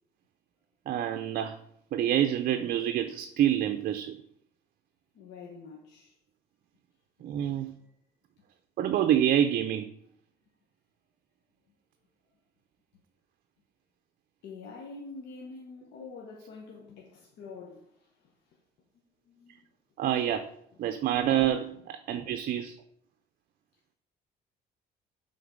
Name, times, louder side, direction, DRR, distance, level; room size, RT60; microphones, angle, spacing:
voice 1, 0.9-1.6 1.9-4.2 7.2-7.7 8.8-9.9 20.0-20.5 20.8-22.8, right 10 dB, 60° right, 0.6 m, -27 dB
voice 2, 5.1-6.1 7.6-7.9 14.4-18.1 18.9-19.7 20.8-21.0, left 4 dB, 80° left, 1.3 m, -46 dB
7.6 x 3.9 x 5.2 m
cardioid pair, 110°, 17 cm